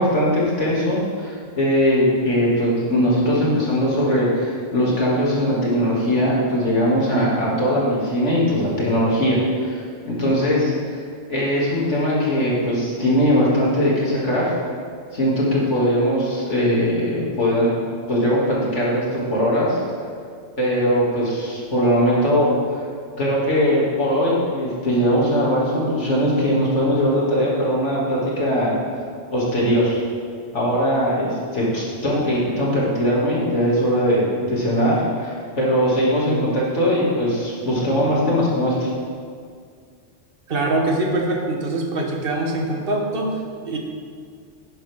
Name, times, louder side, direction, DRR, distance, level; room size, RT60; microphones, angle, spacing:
voice 1, 0.0-11.0 11.3-14.5 15.1-17.8 18.1-19.8 20.6-22.5 23.2-28.7 29.3-30.0 30.5-38.9, equal, 70° left, -6 dB, 2.9 m, -20 dB
voice 2, 40.5-43.8, right 2 dB, 50° right, 1 dB, 1.5 m, -23 dB
10.5 x 10.5 x 3.7 m, 2.1 s
omnidirectional pair, 1.3 m